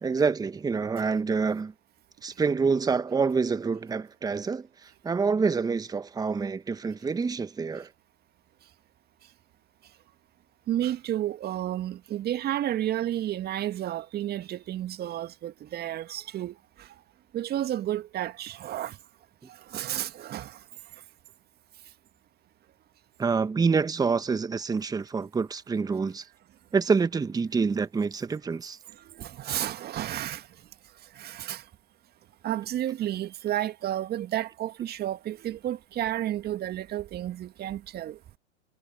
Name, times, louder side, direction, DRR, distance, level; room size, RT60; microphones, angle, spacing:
voice 1, 0.0-1.7 2.2-4.7 5.0-7.9 23.2-26.2 26.7-28.8, right 5 dB, 10° right, 1.4 m, -27 dB
voice 2, 10.7-16.5 17.3-19.0 19.7-20.6 29.2-30.4 31.2-31.6 32.4-38.2, right 12 dB, 25° right, 1.9 m, -31 dB
hypercardioid pair, 110°, 36 cm